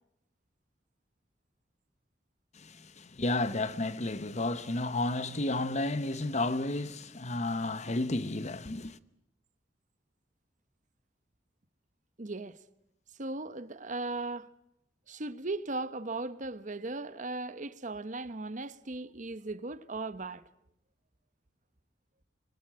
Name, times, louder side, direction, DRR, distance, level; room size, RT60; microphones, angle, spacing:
voice 1, 2.6-9.0, left 2 dB, 40° left, 1.1 m, -32 dB
voice 2, 12.2-12.6 13.2-14.5 15.1-20.4, right 2 dB, 45° right, 1.1 m, -37 dB
26.5 x 21.0 x 8.7 m
head